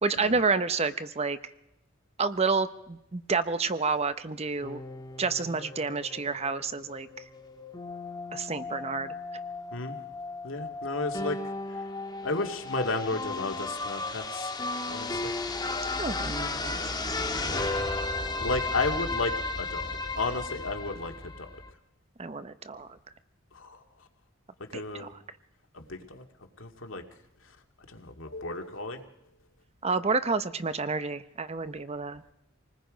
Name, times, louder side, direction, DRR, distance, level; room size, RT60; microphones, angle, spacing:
voice 1, 0.0-1.4 2.2-4.8 5.2-7.1 8.3-9.1 16.0-16.8 22.2-22.9 24.7-25.1 29.8-32.2, right 4 dB, 30° right, 12 dB, 0.8 m, -29 dB
sound 1, 4.6-21.7, left 3 dB, 20° left, 1.5 m, -34 dB
voice 2, 10.4-11.4 12.2-14.5 14.9-15.3 17.5-17.6 18.3-19.3 19.6-19.8 20.1-21.5 23.5-23.8 24.7-25.1 25.7-26.2 26.6-27.0 27.9-29.0, left 3 dB, 70° left, 4 dB, 2.2 m, -33 dB
27.5 x 19.5 x 5.2 m, 0.85 s
head